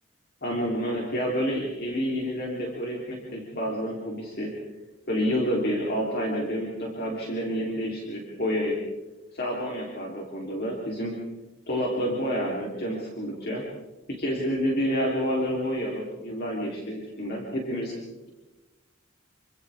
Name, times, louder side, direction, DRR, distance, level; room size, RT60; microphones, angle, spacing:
voice 1, 0.4-4.5 5.1-8.8 9.3-11.1 11.7-13.6 14.1-18.0, equal, 50° left, -2 dB, 3.6 m, -29 dB
27.5 x 26.0 x 3.6 m, 1.1 s
head